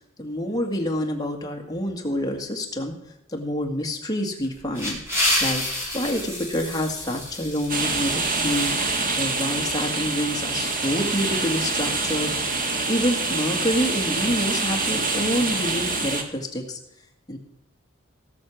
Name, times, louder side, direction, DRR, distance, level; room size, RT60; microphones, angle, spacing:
voice 1, 0.2-3.0 3.3-5.0 5.4-5.6 5.9-16.8 17.3-17.4, equal, 20° left, 2 dB, 1.9 m, -27 dB
sound 1, 4.4-9.0, left 1 dB, 10° right, 3.5 m, -29 dB
sound 2, 7.7-16.2, right 3 dB, 40° right, 1.6 m, -26 dB
17.0 x 6.6 x 6.3 m, 0.78 s
head